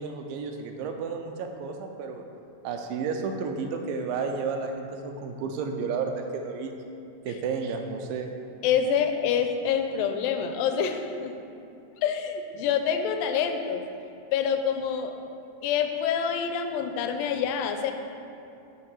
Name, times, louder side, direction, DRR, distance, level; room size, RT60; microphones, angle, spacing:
voice 1, 0.0-2.2 2.6-6.7 7.3-8.3, right 5 dB, 85° right, 4 dB, 2.4 m, -32 dB
voice 2, 8.6-11.3 12.0-13.8 14.3-15.1 15.6-17.9, left 7 dB, 85° left, 6 dB, 2.3 m, -26 dB
8.4 x 5.6 x 4.4 m, 2.7 s
omnidirectional pair, 4.0 m